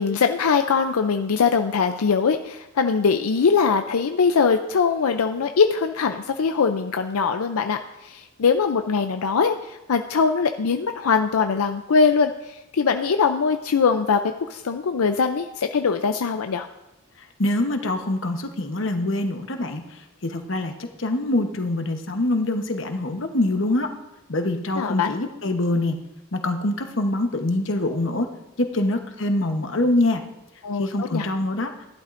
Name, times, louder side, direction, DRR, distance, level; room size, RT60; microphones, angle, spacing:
voice 1, 0.0-14.2 14.5-16.7 24.7-25.1 30.6-31.3, left 5 dB, 90° left, 6 dB, 0.5 m, -22 dB
voice 2, 17.4-19.8 20.2-20.7 21.0-23.9 24.3-25.9 26.3-28.3 28.6-30.2 30.8-31.7, left 1 dB, 60° left, 5 dB, 1.0 m, -24 dB
15.0 x 11.5 x 2.6 m, 0.98 s
head